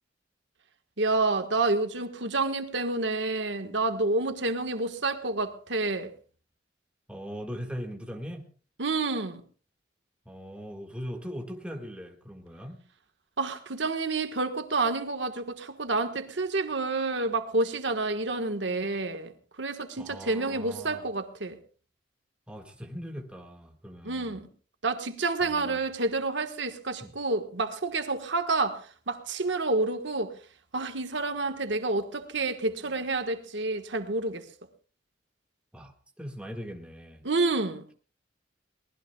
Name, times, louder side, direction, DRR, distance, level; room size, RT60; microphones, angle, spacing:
voice 1, 1.0-6.1 8.8-9.4 13.4-19.3 19.6-21.6 24.0-24.5 24.8-30.3 30.7-34.4 37.2-37.9, right 3 dB, 75° right, 1.4 m, -29 dB
voice 2, 7.1-8.4 10.3-12.8 20.0-21.0 22.5-24.5 25.4-25.8 27.0-27.1 35.7-37.3, equal, 5° right, 1.8 m, -40 dB
23.5 x 19.0 x 2.3 m
head